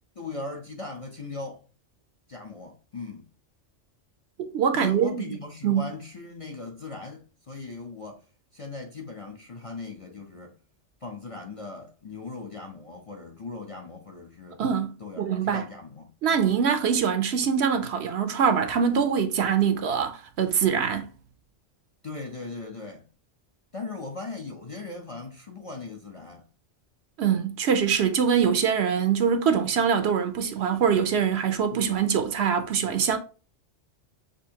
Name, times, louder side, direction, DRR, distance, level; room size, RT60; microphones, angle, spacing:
voice 1, 0.2-1.6 2.3-3.3 4.7-8.2 8.5-10.6 11.0-14.6 15.0-16.1 16.4-16.5 22.0-23.1 23.7-26.5 31.7-32.0, left 3 dB, 35° left, 0.6 m, -39 dB
voice 2, 4.4-5.2 5.6-5.8 14.6-15.7 16.2-21.1 27.2-33.2, right 7 dB, 65° right, 0.8 m, -24 dB
6.1 x 2.7 x 2.8 m
omnidirectional pair, 1.3 m